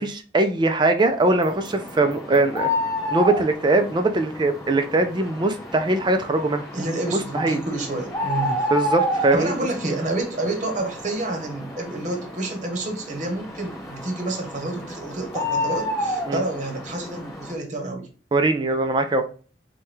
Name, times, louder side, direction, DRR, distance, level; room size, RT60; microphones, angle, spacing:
voice 1, 0.0-2.7 3.1-6.7 7.1-7.6 8.7-9.5 9.9-10.0 16.3-16.4 18.3-19.3, right 2 dB, 25° right, 7 dB, 0.3 m, -21 dB
sound 1, 1.2-17.5, left 1 dB, 20° left, 1.0 m, -30 dB
voice 2, 6.7-8.7 9.3-18.1, right 2 dB, 40° right, 4 dB, 0.9 m, -29 dB
4.4 x 2.2 x 3.2 m, 0.39 s
head